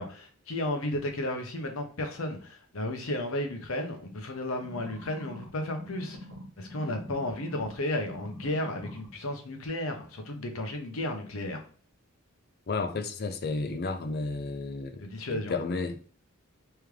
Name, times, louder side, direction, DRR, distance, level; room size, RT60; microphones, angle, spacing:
voice 1, 0.0-6.2 6.6-11.6 15.0-15.5, left 1 dB, 70° left, 0.8 m, -33 dB
sound 1, 4.6-7.8 8.1-9.1 9.7-9.8, equal, 60° right, 1.3 m, -44 dB
voice 2, 12.7-15.0 15.3-16.1, left 3 dB, 45° left, 0.5 m, -32 dB
3.5 x 3.4 x 3.1 m
head